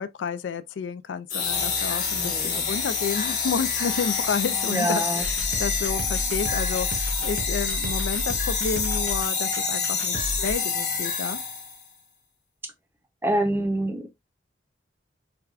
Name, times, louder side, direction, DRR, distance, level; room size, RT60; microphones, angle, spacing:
voice 1, 0.0-11.4, left 6 dB, 85° left, 0.4 m, -31 dB
sound 1, 1.3-11.8, left 5 dB, 40° left, 1.3 m, -27 dB
voice 2, 2.2-2.6 4.7-5.2 13.2-14.1, right 1 dB, 15° right, 0.6 m, -26 dB
sound 2, 5.2-10.5, left 1 dB, 55° right, 0.7 m, -32 dB
4.7 x 2.3 x 2.3 m
head